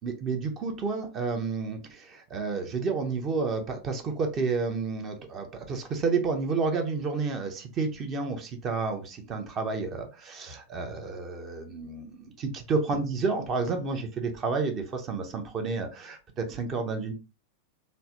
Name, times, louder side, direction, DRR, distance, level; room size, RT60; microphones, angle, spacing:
voice 1, 0.0-17.1, right 4 dB, 30° right, 6 dB, 0.6 m, -30 dB
3.1 x 2.0 x 2.8 m, 0.30 s
figure-of-eight pair, 90°, 0 cm